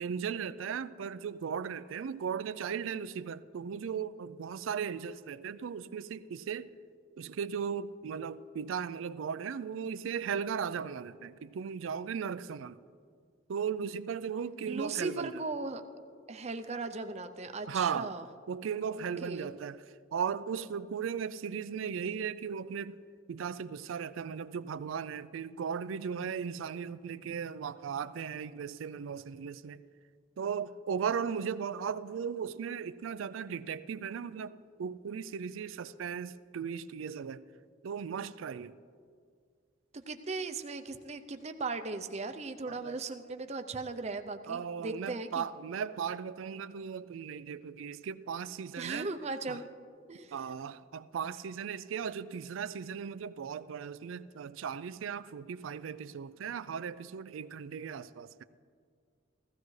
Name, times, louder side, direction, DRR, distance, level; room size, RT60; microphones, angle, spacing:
voice 1, 0.0-6.7 7.2-12.8 13.5-15.4 17.7-18.1 18.5-19.8 20.1-23.0 23.3-29.8 30.4-34.5 34.8-37.4 37.8-38.7 42.7-43.0 44.5-49.1 49.5-49.6 50.3-58.4, right 7 dB, 80° right, 0.4 m, -37 dB
voice 2, 14.7-15.8 16.3-18.2 18.9-19.5 39.9-45.4 48.8-49.7 50.1-50.4, right 3 dB, 35° right, 0.6 m, -38 dB
15.5 x 15.5 x 3.2 m
head